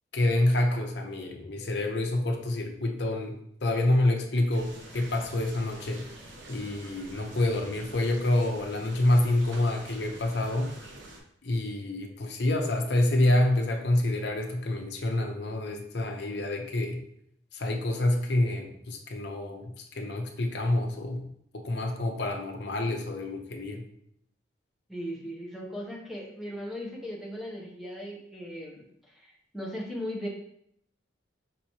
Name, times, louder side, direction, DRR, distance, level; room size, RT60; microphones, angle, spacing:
voice 1, 0.1-3.3 3.6-6.0 6.5-10.7 11.4-17.0 17.5-21.3 21.5-23.8, left 1 dB, 65° left, 3 dB, 0.6 m, -27 dB
sound 1, 4.5-11.2, right 1 dB, 75° right, 0.8 m, -47 dB
voice 2, 24.9-30.3, equal, ahead, -3 dB, 0.7 m, -38 dB
5.4 x 3.0 x 2.8 m, 0.72 s
head